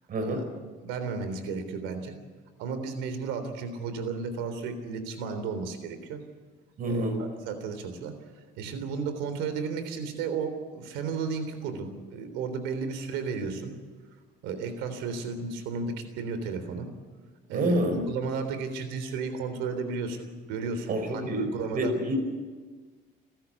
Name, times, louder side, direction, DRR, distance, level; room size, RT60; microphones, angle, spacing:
voice 1, 0.1-0.5 6.8-7.2 17.5-18.0 20.9-21.5 21.7-22.2, right 1 dB, 50° right, 7 dB, 5.6 m, -27 dB
voice 2, 0.8-2.1 2.6-6.2 6.8-8.1 8.6-13.7 14.4-16.9 17.5-21.9, right 5 dB, 90° right, 9 dB, 3.6 m, -33 dB
29.0 x 13.0 x 8.4 m, 1.4 s
cardioid pair, 125°, 19 cm